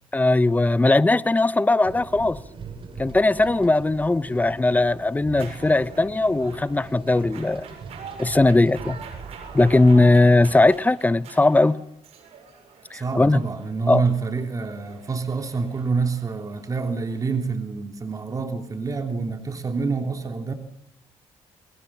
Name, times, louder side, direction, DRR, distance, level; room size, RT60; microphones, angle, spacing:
voice 1, 0.1-2.4 3.0-7.7 8.2-9.0 9.5-11.8 12.9-13.4 13.9-14.0, left 2 dB, 15° left, 1.1 m, -19 dB
sound 1, 1.8-10.6, right 5 dB, 55° right, 5.3 m, -41 dB
sound 2, 5.3-17.3, right 6 dB, 75° right, 7.4 m, -44 dB
voice 2, 12.9-20.5, right 4 dB, 35° right, 3.2 m, -27 dB
29.5 x 21.0 x 7.4 m
cardioid pair, 85°, 11 cm